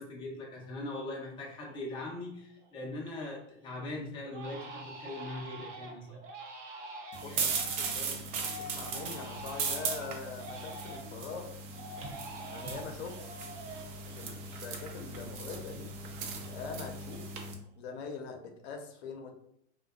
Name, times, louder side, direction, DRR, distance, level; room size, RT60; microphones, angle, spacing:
voice 1, 0.0-6.2 7.2-7.4, left 2 dB, 15° left, -2 dB, 0.4 m, -41 dB
Crying sobbing, 1.7-2.2 2.6-3.4 3.7-3.9 4.3-11.2 11.7-15.0 15.3-16.8 17.1-17.6, right 2 dB, 85° right, 0.7 m, -47 dB
sound 1, 7.1-17.5, right 4 dB, 50° right, 0.6 m, -38 dB
voice 2, 7.2-8.2 8.6-11.6 12.5-13.2 14.1-15.9 16.4-17.3 17.8-19.3, left 4 dB, 65° left, 4 dB, 0.6 m, -43 dB
2.5 x 2.2 x 2.3 m, 0.70 s
hypercardioid pair, 115°, 35 cm